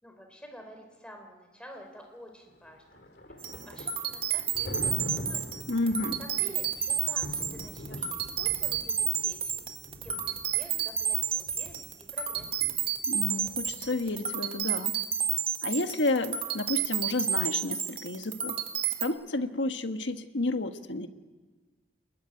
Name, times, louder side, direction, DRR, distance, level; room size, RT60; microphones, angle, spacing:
voice 1, 0.0-3.0 3.4-5.6 6.2-9.6 10.0-12.5, equal, 5° left, 3 dB, 4.2 m, -49 dB
Thunder, 2.5-14.3, equal, 60° left, 3.1 m, -44 dB
sound 1, 3.4-19.0, right 9 dB, 30° right, 1.7 m, -31 dB
voice 2, 5.7-6.2 13.1-15.0 15.6-18.6 19.0-21.1, left 2 dB, 85° left, 7 dB, 1.6 m, -31 dB
27.0 x 21.5 x 9.9 m, 1.3 s
head